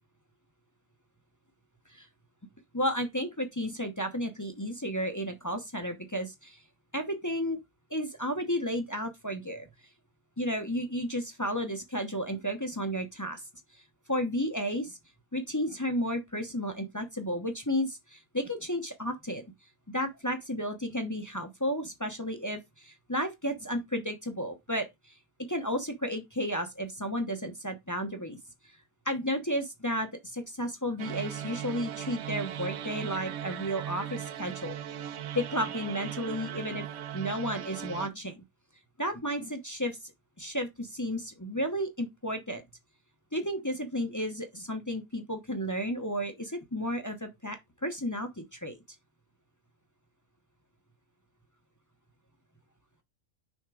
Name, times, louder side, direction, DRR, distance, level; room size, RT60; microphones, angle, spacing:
voice 1, 2.7-6.6 6.9-7.6 7.9-9.7 10.4-13.4 13.7-13.8 14.1-15.0 15.3-19.4 19.9-25.2 25.5-28.4 29.0-34.8 35.1-36.8 37.1-38.4 39.0-40.1 40.4-42.6 43.3-48.8, equal, 15° left, 0.7 m, -33 dB
sound 1, 31.0-38.1, right 10 dB, 60° right, 0.8 m, -38 dB
6.4 x 3.6 x 4.9 m
omnidirectional pair, 1.5 m